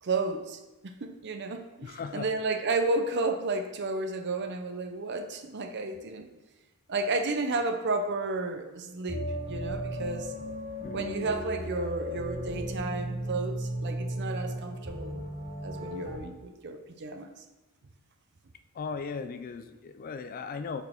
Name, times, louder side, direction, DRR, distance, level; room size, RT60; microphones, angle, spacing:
voice 1, 0.0-6.3 6.9-10.3 10.9-15.2 15.6-17.4, right 3 dB, 55° right, 7 dB, 0.6 m, -32 dB
voice 2, 1.8-2.3 10.8-11.3 18.7-20.8, left 5 dB, 40° left, 10 dB, 0.3 m, -38 dB
sound 1, 9.1-16.2, equal, 35° right, 1.8 m, -35 dB
5.4 x 4.2 x 4.4 m, 1.1 s
head